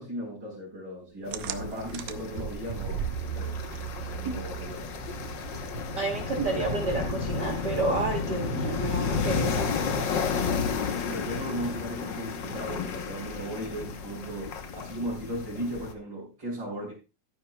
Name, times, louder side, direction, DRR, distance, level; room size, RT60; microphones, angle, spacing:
voice 1, 0.0-3.6 4.0-4.9 10.3-10.7 11.1-16.9, right 1 dB, 35° right, -7 dB, 4.9 m, -37 dB
sound 1, 1.3-15.9, left 5 dB, 90° left, 1.0 m, -32 dB
sound 2, 1.3-8.5, right 9 dB, 75° right, 2.0 m, -38 dB
voice 2, 6.0-9.7, right 3 dB, 55° right, 1 dB, 1.2 m, -30 dB
14.5 x 9.3 x 2.3 m, 0.29 s
omnidirectional pair, 3.6 m